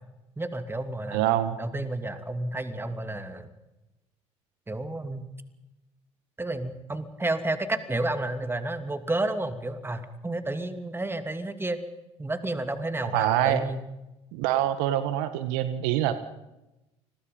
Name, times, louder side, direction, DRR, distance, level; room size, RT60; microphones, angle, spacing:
voice 1, 0.4-1.2 1.6-3.5 4.7-5.3 6.4-11.8 12.2-13.8, right 2 dB, 15° right, 9 dB, 2.8 m, -31 dB
voice 2, 1.1-1.6 13.1-13.6 14.3-16.2, right 12 dB, 70° right, 12 dB, 1.5 m, -25 dB
29.5 x 21.0 x 5.5 m, 0.97 s
hypercardioid pair, 65°, 16 cm